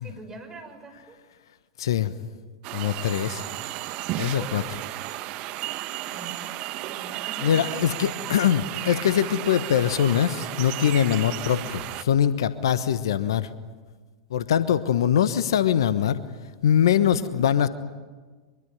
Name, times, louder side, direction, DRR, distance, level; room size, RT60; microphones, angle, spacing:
voice 1, 0.0-1.2 4.3-4.7 6.1-7.8 8.2-8.6 16.9-17.4, right 2 dB, 20° right, 5 dB, 6.1 m, -43 dB
voice 2, 1.8-2.1 2.7-3.4 4.2-4.6 7.4-13.5 14.3-16.2 16.6-17.7, left 9 dB, 70° left, 13 dB, 1.2 m, -22 dB
sound 1, 2.6-12.0, right 15 dB, 45° right, 1.4 m, -34 dB
24.5 x 23.5 x 9.5 m, 1.4 s
figure-of-eight pair, 95°, 3 cm